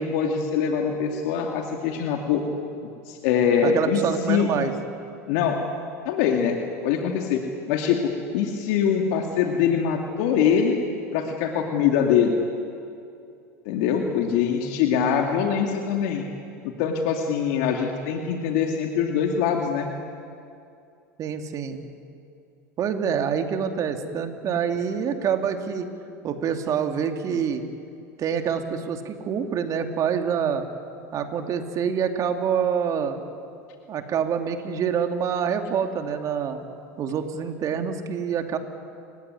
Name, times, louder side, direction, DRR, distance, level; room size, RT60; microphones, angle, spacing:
voice 1, 0.0-2.4 2.8-4.0 4.3-4.5 5.3-5.6 6.0-7.4 7.7-8.0 8.3-10.7 11.1-12.4 13.6-16.3 16.6-19.9, left 7 dB, 65° left, 2 dB, 2.6 m, -23 dB
voice 2, 3.6-4.7 14.9-15.0 21.2-21.8 22.8-25.9 26.2-27.6 28.2-30.6 31.1-33.2 33.9-36.6 37.0-38.6, right 7 dB, 40° right, 5 dB, 2.7 m, -26 dB
29.5 x 16.0 x 9.6 m, 2.5 s
hypercardioid pair, 95°, 9 cm